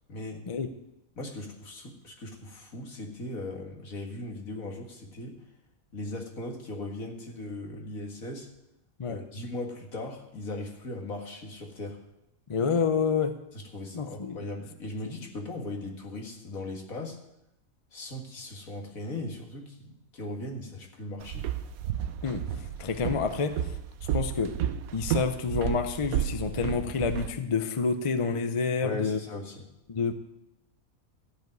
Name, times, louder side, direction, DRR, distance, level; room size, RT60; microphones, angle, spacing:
voice 1, 0.1-0.4 1.2-5.4 5.9-8.5 9.0-12.0 13.5-17.2 17.9-21.5 28.8-29.6, left 2 dB, 75° left, 1 dB, 2.2 m, -38 dB
voice 2, 12.5-13.4 13.9-14.4 22.2-22.4 22.8-23.7 24.1-24.6 24.9-29.2 29.9-30.1, left 5 dB, 35° left, 9 dB, 0.6 m, -28 dB
Walk footsteps, 21.2-27.3, right 10 dB, 80° right, 1.1 m, -32 dB
14.0 x 5.2 x 9.3 m, 0.85 s
omnidirectional pair, 1.5 m